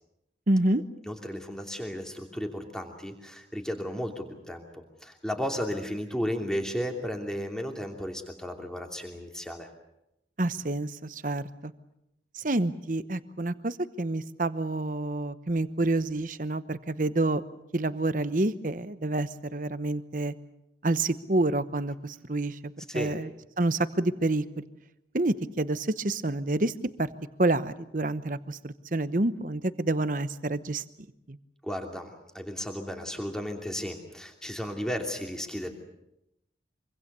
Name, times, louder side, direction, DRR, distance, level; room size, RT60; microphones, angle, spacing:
voice 1, 0.5-0.8 10.4-11.7 12.3-17.4 17.7-20.3 20.8-23.3 23.6-24.4 25.1-27.1 27.4-30.8 31.3-31.4, right 2 dB, 45° right, 13 dB, 1.0 m, -28 dB
voice 2, 1.0-9.7 22.9-23.1 31.6-35.7, equal, 5° left, 3 dB, 2.8 m, -34 dB
25.5 x 25.0 x 6.8 m, 0.85 s
head